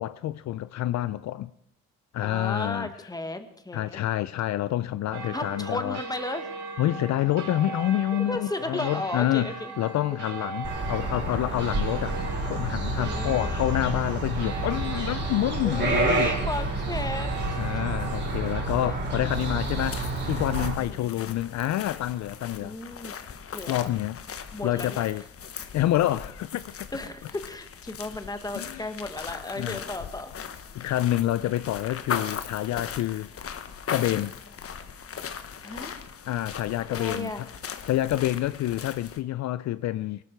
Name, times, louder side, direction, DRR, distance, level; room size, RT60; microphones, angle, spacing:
voice 1, 0.0-1.5 2.1-2.9 3.7-6.0 6.8-12.2 12.4-16.3 17.6-20.0 20.3-22.8 23.7-25.2 25.7-26.7 28.5-28.9 29.6-29.8 30.7-33.3 33.9-34.3 36.3-37.5 37.9-40.2, left 14 dB, 65° left, 0.5 m, -28 dB
voice 2, 2.2-4.1 5.3-6.5 8.3-9.7 13.0-13.6 15.6-17.3 18.8-18.9 19.2-19.3 20.8-21.3 22.6-23.2 23.5-23.7 24.5-25.0 26.9-30.3 35.6-36.1 36.9-37.5, left 2 dB, 10° left, 1.5 m, -35 dB
sound 1, 5.1-18.6, right 4 dB, 70° right, 2.1 m, -39 dB
sound 2, 10.6-20.7, right 2 dB, 35° right, 4.3 m, -29 dB
sound 3, 19.6-39.2, left 7 dB, 50° left, 1.2 m, -39 dB
18.0 x 12.5 x 4.6 m
cardioid pair, 90°, 30 cm